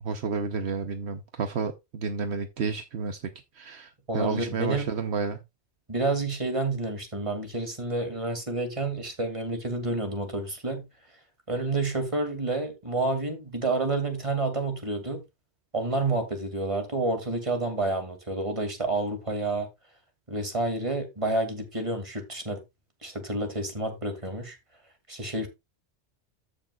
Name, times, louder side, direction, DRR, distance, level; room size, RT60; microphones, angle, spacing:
voice 1, 0.0-5.4, right 5 dB, 70° right, 1.1 m, -31 dB
voice 2, 4.1-4.9 5.9-10.8 11.5-15.2 15.7-19.7 20.3-22.6 23.0-24.6 25.1-25.5, right 2 dB, 30° right, 2.3 m, -29 dB
14.0 x 6.6 x 2.3 m
omnidirectional pair, 1.2 m